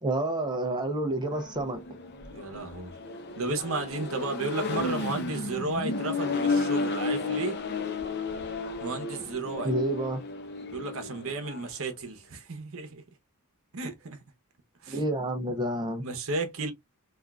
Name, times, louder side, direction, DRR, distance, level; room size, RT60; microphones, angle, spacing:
voice 1, 0.0-1.8 9.6-10.2 14.9-16.1, right 1 dB, 20° right, 0.5 m, -29 dB
Accelerating revving vroom, 1.3-11.7, left 3 dB, 50° left, 0.6 m, -33 dB
voice 2, 2.3-2.9 3.4-7.6 8.8-9.7 10.6-13.0 13.7-14.2 14.8-15.0 16.0-16.7, right 3 dB, 65° right, 0.8 m, -33 dB
3.5 x 2.4 x 2.3 m
head